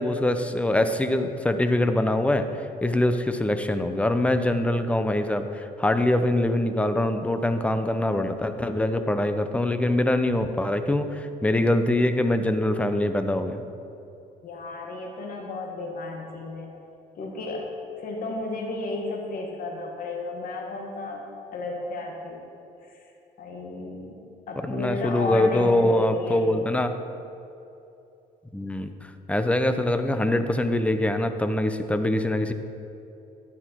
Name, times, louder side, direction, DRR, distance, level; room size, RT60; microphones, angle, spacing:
voice 1, 0.0-2.5 2.8-13.6 24.6-26.9 28.5-28.9 29.3-32.5, left 1 dB, 5° left, 8 dB, 0.7 m, -24 dB
voice 2, 14.4-16.7 17.2-17.7 18.0-21.2 21.5-22.4 22.8-23.0 23.4-24.2 24.5-26.5, left 2 dB, 55° left, 0 dB, 1.9 m, -33 dB
12.5 x 10.0 x 4.6 m, 2.8 s
cardioid pair, 110°, 17 cm